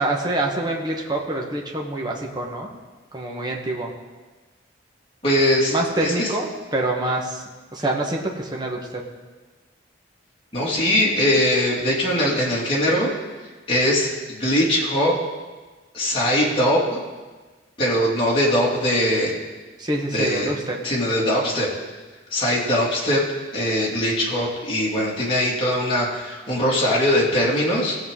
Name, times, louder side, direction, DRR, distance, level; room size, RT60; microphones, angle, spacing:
voice 1, 0.0-2.7 3.1-3.9 5.7-7.4 7.7-9.0 19.8-20.8, right 2 dB, 20° right, -1 dB, 1.1 m, -26 dB
voice 2, 5.2-5.8 6.0-6.3 10.5-13.1 13.7-15.2 15.9-17.0 17.8-19.4 20.1-20.5 20.8-21.7 22.3-23.2 23.5-28.0, equal, 30° left, -5 dB, 2.5 m, -21 dB
18.0 x 7.7 x 3.8 m, 1.3 s
head